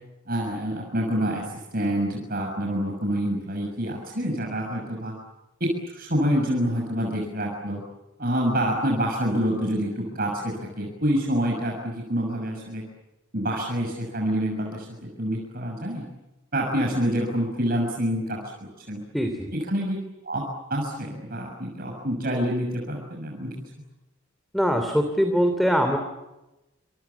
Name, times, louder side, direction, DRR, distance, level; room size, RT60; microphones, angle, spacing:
voice 1, 0.3-5.1 5.6-7.8 8.2-12.8 13.3-16.1 16.5-19.0 19.5-20.0 20.2-23.5, equal, 45° right, 0 dB, 6.4 m, -27 dB
voice 2, 19.1-19.5 24.5-26.0, equal, ahead, 6 dB, 2.9 m, -22 dB
29.5 x 27.0 x 7.1 m, 1.0 s
head